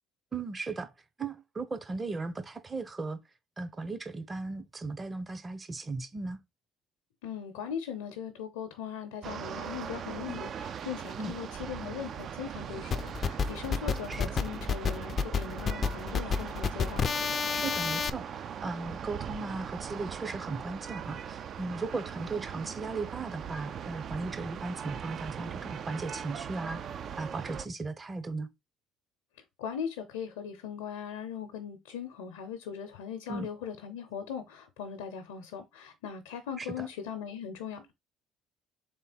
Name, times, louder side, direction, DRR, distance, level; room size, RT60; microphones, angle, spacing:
voice 1, 0.3-0.9 1.2-3.2 3.6-6.4 11.2-11.3 14.1-14.4 17.5-26.8 27.2-28.5 33.3-33.5 36.6-36.9, right 3 dB, 30° right, 0.8 m, -37 dB
voice 2, 7.2-17.0 29.6-37.9, left 7 dB, 85° left, 0.7 m, -39 dB
sound 1, 9.2-27.7, right 8 dB, 55° right, 0.4 m, -40 dB
sound 2, 12.9-18.1, left 6 dB, 45° left, 0.4 m, -29 dB
3.7 x 3.4 x 4.2 m
hypercardioid pair, 65°, 0 cm